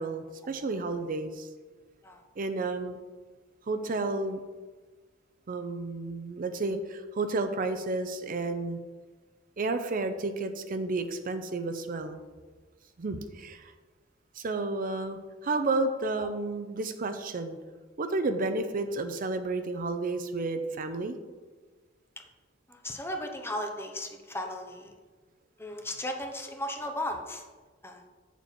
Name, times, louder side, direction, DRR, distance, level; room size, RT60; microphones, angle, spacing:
voice 1, 0.0-1.5 2.4-3.0 3.7-4.4 5.5-8.8 9.6-12.2 13.0-13.7 14.3-17.6 18.0-21.2, right 3 dB, 45° right, 9 dB, 0.5 m, -31 dB
voice 2, 22.7-24.9 25.6-27.4 27.8-28.0, left 1 dB, 15° left, 4 dB, 0.8 m, -36 dB
7.4 x 7.1 x 4.3 m, 1.3 s
head